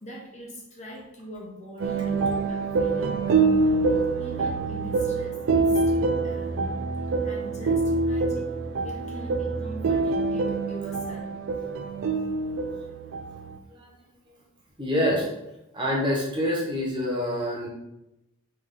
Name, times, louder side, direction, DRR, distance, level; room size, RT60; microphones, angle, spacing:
voice 1, 0.0-3.8 4.2-6.9 7.2-8.5 8.8-11.3, equal, 35° left, -3 dB, 0.8 m, -42 dB
sound 1, 1.8-13.6, right 3 dB, 65° right, 0.4 m, -25 dB
voice 2, 14.8-15.3 15.7-17.7, equal, 20° right, -4 dB, 1.0 m, -26 dB
3.4 x 3.1 x 3.7 m, 0.91 s
head